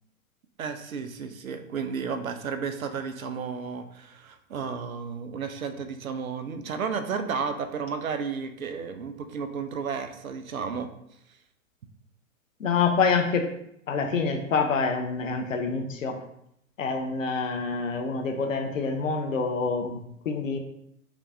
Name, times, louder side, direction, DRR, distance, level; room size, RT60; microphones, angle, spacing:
voice 1, 0.6-10.9, right 6 dB, 75° right, 8 dB, 0.6 m, -33 dB
voice 2, 12.6-13.5 13.9-16.2 16.8-20.6, left 5 dB, 65° left, 4 dB, 0.7 m, -26 dB
3.3 x 2.9 x 2.6 m, 0.76 s
figure-of-eight pair, 105°, 42 cm